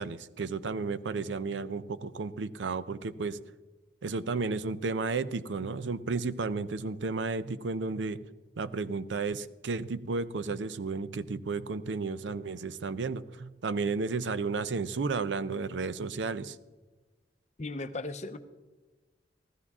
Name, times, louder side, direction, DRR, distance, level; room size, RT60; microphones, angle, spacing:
voice 1, 0.0-3.4 4.0-8.2 8.6-16.6, right 4 dB, 90° right, 14 dB, 0.5 m, -33 dB
voice 2, 17.6-18.4, left 2 dB, 40° left, 10 dB, 0.7 m, -36 dB
14.5 x 13.5 x 3.6 m, 1.2 s
head